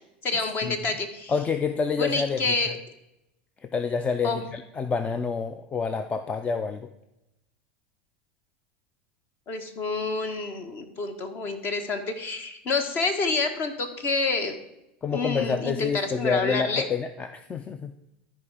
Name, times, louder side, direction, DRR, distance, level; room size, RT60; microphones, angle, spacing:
voice 1, 0.2-1.3 2.0-2.7 4.2-4.4 9.5-14.6 15.1-16.9, left 3 dB, 40° left, 7 dB, 1.4 m, -28 dB
voice 2, 1.3-2.7 3.6-6.9 15.0-17.9, left 5 dB, 20° left, 10 dB, 0.5 m, -28 dB
12.5 x 4.9 x 4.9 m, 0.91 s
supercardioid pair, 110°, 5 cm